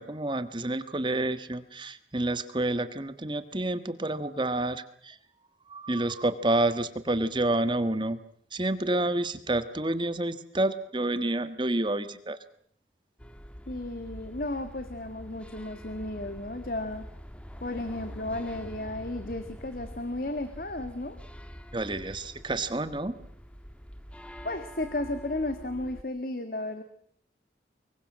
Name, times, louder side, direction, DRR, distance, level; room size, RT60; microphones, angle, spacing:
voice 1, 0.0-5.2 5.7-8.2 8.5-12.4 21.7-23.1, right 2 dB, 25° right, 11 dB, 1.4 m, -29 dB
sound 1, 13.2-26.0, equal, 5° left, 1.4 m, -45 dB
voice 2, 13.7-17.1 17.6-21.2 24.4-26.8, left 2 dB, 55° left, 10 dB, 2.0 m, -34 dB
25.0 x 22.5 x 7.5 m, 0.64 s
head